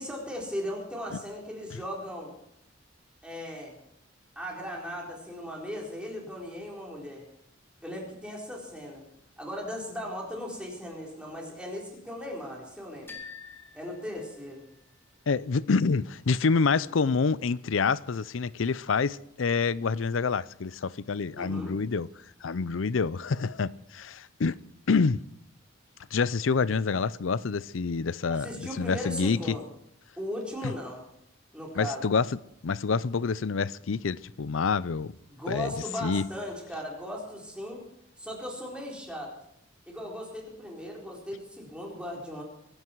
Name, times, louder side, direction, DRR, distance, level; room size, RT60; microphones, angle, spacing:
voice 1, 0.0-2.3 3.2-3.7 4.4-7.2 7.8-9.0 9.4-13.2 13.7-14.6 21.3-21.7 28.3-29.7 30.2-31.0 31.5-32.0 35.3-37.8 38.2-39.3 39.9-42.4, equal, 5° right, 4.4 m, -37 dB
sound 1, 13.1-15.0, left 5 dB, 10° left, 2.5 m, -47 dB
voice 2, 15.3-22.1 22.4-24.6 24.9-25.2 26.1-29.6 31.8-32.3 32.6-35.1 35.5-35.7 36.0-36.3, left 5 dB, 75° left, 0.5 m, -27 dB
23.0 x 11.5 x 4.7 m
head